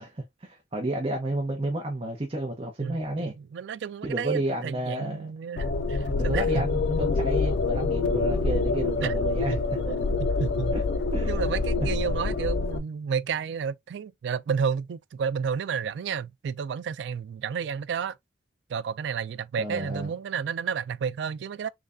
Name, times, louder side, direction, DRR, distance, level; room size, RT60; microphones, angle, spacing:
voice 1, 0.0-3.4 4.0-5.3 6.1-9.6 10.7-10.8 11.1-11.4 19.6-20.1, right 1 dB, 30° right, 0.7 m, -31 dB
voice 2, 2.8-6.6 9.0-9.1 9.5-10.8 11.2-18.2 18.7-21.7, right 6 dB, 70° right, 0.3 m, -31 dB
sound 1, 5.6-12.8, left 3 dB, 70° left, 0.4 m, -26 dB
3.5 x 3.2 x 2.5 m
head